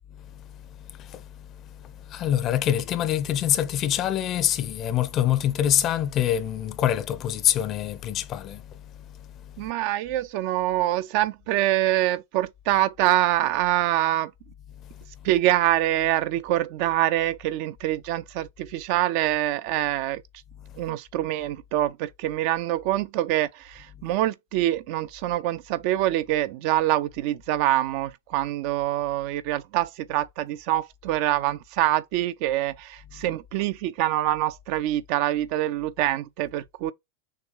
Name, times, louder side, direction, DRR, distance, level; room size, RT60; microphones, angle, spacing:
voice 1, 0.1-9.7 14.7-15.3 20.6-20.9, left 11 dB, 35° left, 0.6 m, -26 dB
voice 2, 9.6-14.3 15.2-20.2 20.8-36.9, right 14 dB, 45° right, 0.4 m, -25 dB
6.5 x 2.3 x 3.2 m
figure-of-eight pair, 90°, 0 cm